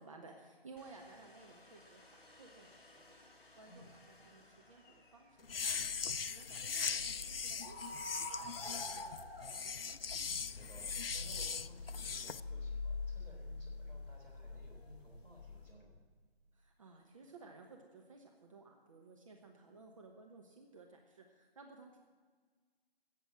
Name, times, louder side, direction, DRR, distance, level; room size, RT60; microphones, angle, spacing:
voice 1, 0.0-3.2 3.5-5.9 6.3-8.3 8.6-10.0 16.5-22.0, right 3 dB, 35° right, 1 dB, 1.1 m, -57 dB
Domestic sounds home sounds, 0.8-13.9, left 2 dB, 55° left, 2.6 m, -65 dB
sound 1, 5.4-12.4, left 6 dB, 70° left, 0.5 m, -40 dB
sound 2, 5.5-15.7, left 3 dB, 25° left, 3.6 m, -46 dB
voice 2, 10.5-16.0, equal, 5° left, -8 dB, 2.2 m, -59 dB
16.0 x 7.4 x 7.6 m, 1.5 s
figure-of-eight pair, 150°, 30 cm